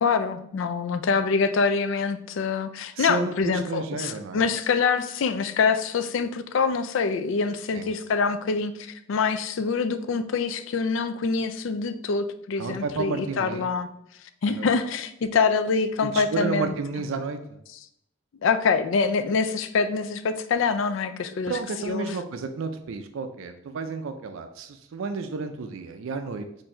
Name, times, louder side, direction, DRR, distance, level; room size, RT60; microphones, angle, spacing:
voice 1, 0.0-13.9 14.4-16.7 18.4-21.6 21.9-22.1, left 5 dB, 65° left, 11 dB, 0.4 m, -25 dB
voice 2, 3.0-4.4 7.7-7.9 12.6-13.6 14.5-14.7 16.0-17.4 21.5-26.5, right 4 dB, 70° right, 7 dB, 0.4 m, -31 dB
4.4 x 2.6 x 4.2 m, 0.74 s
head